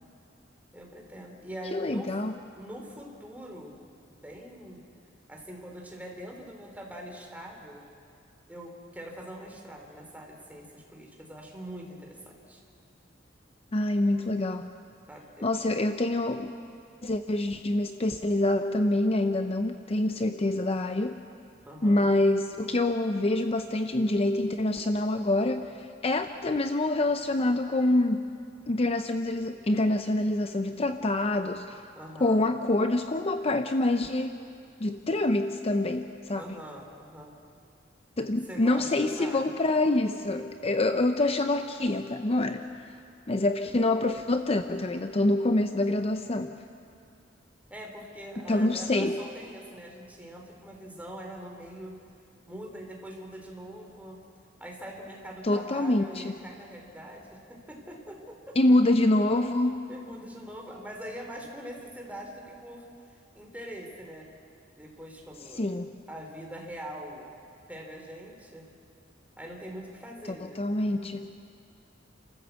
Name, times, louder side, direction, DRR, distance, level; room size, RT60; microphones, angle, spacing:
voice 1, 0.7-2.1 2.6-3.7 4.2-4.8 5.3-7.8 8.5-12.6 15.1-15.5 21.7-22.1 31.9-32.5 36.3-37.3 38.5-39.5 47.7-52.0 52.5-54.2 54.6-58.6 59.9-62.9 63.3-64.3 64.8-65.7 66.1-67.2 67.7-68.7 69.4-70.6, equal, 10° right, 0 dB, 3.3 m, -43 dB
voice 2, 1.7-2.4 13.7-14.7 15.4-16.5 17.0-21.2 21.8-28.3 28.7-31.8 32.2-34.4 34.8-36.6 38.2-43.0 43.3-46.6 48.4-49.2 55.4-56.4 58.6-59.9 65.6-65.9 70.4-71.3, left 2 dB, 35° left, 8 dB, 0.6 m, -26 dB
30.0 x 14.0 x 8.1 m, 2.5 s
head